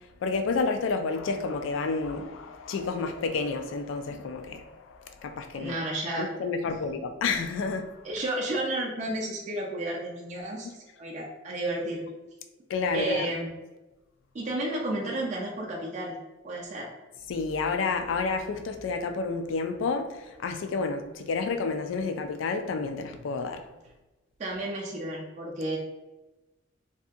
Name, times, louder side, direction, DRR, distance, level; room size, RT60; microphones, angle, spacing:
voice 1, 0.2-5.7 6.2-8.0 12.7-13.3 17.3-23.6, left 4 dB, 85° left, 0.3 m, -30 dB
voice 2, 5.5-6.3 8.0-12.1 12.9-13.5 14.3-16.2 16.4-16.9 24.4-25.8, right 1 dB, 40° right, 0.4 m, -32 dB
2.7 x 2.5 x 2.3 m
head